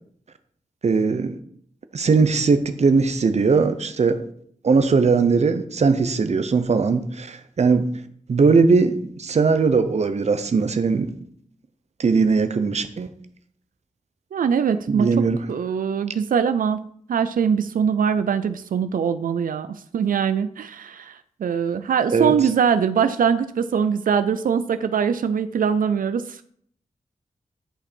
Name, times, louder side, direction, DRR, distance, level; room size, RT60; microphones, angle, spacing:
voice 1, 0.8-1.3 1.9-4.2 4.6-7.9 8.3-11.1 12.0-13.1 14.9-15.4 22.1-22.3, right 4 dB, 55° right, 0.8 m, -19 dB
voice 2, 14.3-15.1 15.5-26.4, right 7 dB, 90° right, 0.4 m, -22 dB
11.5 x 5.3 x 4.4 m
wide cardioid pair, 130°, 14 cm